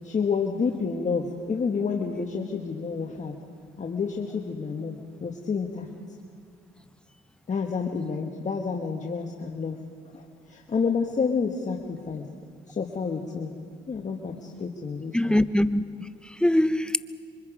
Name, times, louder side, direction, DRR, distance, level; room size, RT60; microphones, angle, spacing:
voice 1, 0.0-3.4 3.8-5.9 7.5-9.8 10.1-12.2 12.7-13.5 13.9-15.4, left 5 dB, 35° left, 1.6 m, -29 dB
voice 2, 15.1-17.0, left 1 dB, 5° left, 0.7 m, -23 dB
27.0 x 24.5 x 5.0 m
cardioid pair, 90°, 20 cm